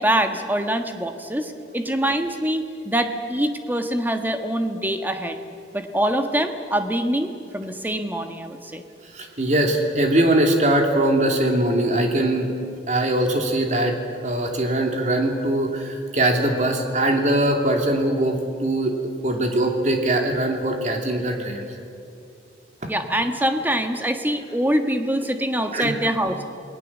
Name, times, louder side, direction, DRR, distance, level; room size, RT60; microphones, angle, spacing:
voice 1, 0.0-5.4 5.7-8.8 22.9-26.4, right 1 dB, 10° right, 6 dB, 1.4 m, -24 dB
voice 2, 9.1-12.5 12.9-14.0 14.2-21.6 25.7-26.0, right 1 dB, 40° right, 3 dB, 2.9 m, -21 dB
28.5 x 20.0 x 7.4 m, 2.5 s
head